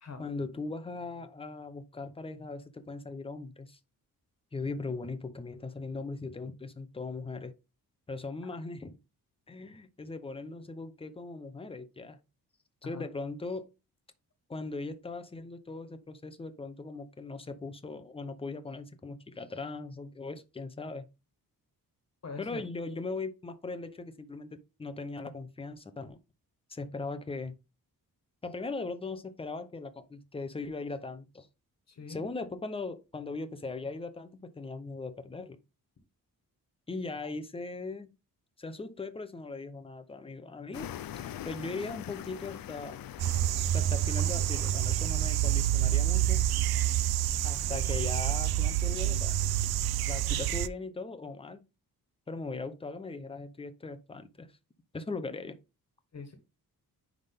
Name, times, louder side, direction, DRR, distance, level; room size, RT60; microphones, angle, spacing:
voice 1, 0.2-3.8 4.5-7.5 8.1-9.0 9.5-12.2 12.8-13.7 14.5-21.1 22.4-26.2 26.7-27.5 28.4-31.5 32.1-35.6 36.9-38.1 38.6-40.9 41.4-43.0 43.7-46.4 47.4-49.4 50.1-51.6 52.3-54.5 54.9-55.6, left 3 dB, 15° left, 0.7 m, -39 dB
voice 2, 22.2-22.6 31.9-32.2 56.1-56.3, left 4 dB, 45° left, 1.6 m, -42 dB
sound 1, 40.7-46.9, left 11 dB, 70° left, 0.6 m, -44 dB
sound 2, 43.2-50.7, right 12 dB, 85° right, 0.5 m, -28 dB
9.7 x 3.6 x 3.5 m
wide cardioid pair, 155°, 37 cm